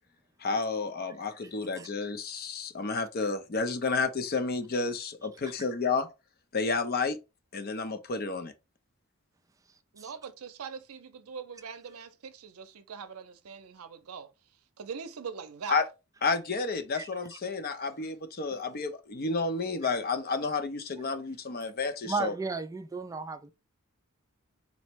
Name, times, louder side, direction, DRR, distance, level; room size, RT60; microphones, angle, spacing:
voice 1, 0.4-6.1 6.5-7.2 7.5-8.5 15.7-15.9 16.2-22.3, left 4 dB, 45° left, 0.5 m, -31 dB
voice 2, 9.9-14.3 14.8-15.8, right 6 dB, 90° right, 0.5 m, -42 dB
voice 3, 22.1-23.5, right 4 dB, 15° right, 0.3 m, -34 dB
4.1 x 2.1 x 4.4 m
head